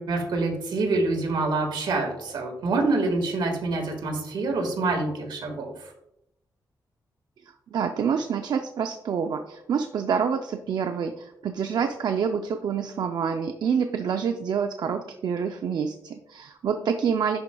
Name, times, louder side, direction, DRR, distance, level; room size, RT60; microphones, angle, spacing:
voice 1, 0.0-5.9, right 3 dB, 85° right, 2 dB, 1.6 m, -26 dB
voice 2, 7.7-17.4, right 7 dB, 65° right, 6 dB, 0.4 m, -27 dB
11.0 x 4.8 x 2.3 m, 0.82 s
wide cardioid pair, 115°, 8 cm